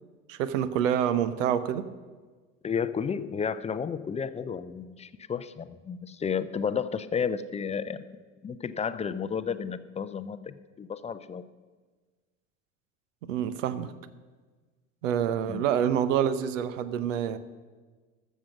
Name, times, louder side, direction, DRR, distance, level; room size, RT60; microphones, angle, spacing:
voice 1, 0.3-1.9 13.2-13.9 15.0-17.4, right 9 dB, 70° right, 13 dB, 0.9 m, -27 dB
voice 2, 2.6-8.0 8.4-11.4 15.5-15.7, left 6 dB, 15° left, 13 dB, 0.5 m, -32 dB
13.5 x 7.4 x 6.2 m, 1.4 s
figure-of-eight pair, 70°, 40 cm